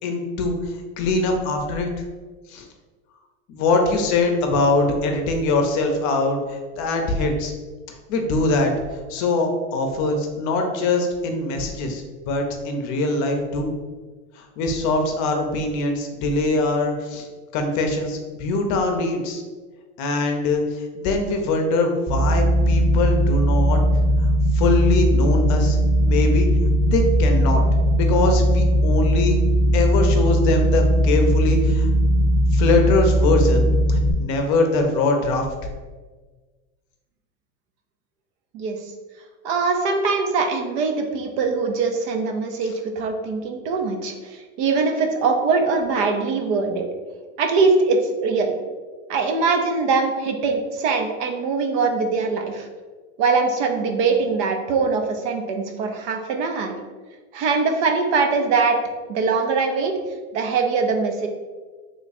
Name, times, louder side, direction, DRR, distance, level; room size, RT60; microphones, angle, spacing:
voice 1, 0.0-1.9 2.5-2.7 3.5-7.5 8.1-8.7 9.1-13.7 14.4-17.3 17.5-19.4 20.0-23.8 24.5-26.5 26.9-27.6 28.0-29.4 29.7-31.9 32.5-35.5, left 3 dB, 45° left, 4 dB, 0.6 m, -22 dB
sound 1, 22.1-34.1, equal, 15° right, 0.9 m, -18 dB
voice 2, 39.4-46.8 47.4-48.5 49.1-52.7 53.2-56.8 57.3-58.8 59.1-60.0 60.3-61.3, right 4 dB, 55° right, 4 dB, 0.6 m, -22 dB
3.1 x 2.3 x 4.0 m, 1.4 s
supercardioid pair, 115°, 41 cm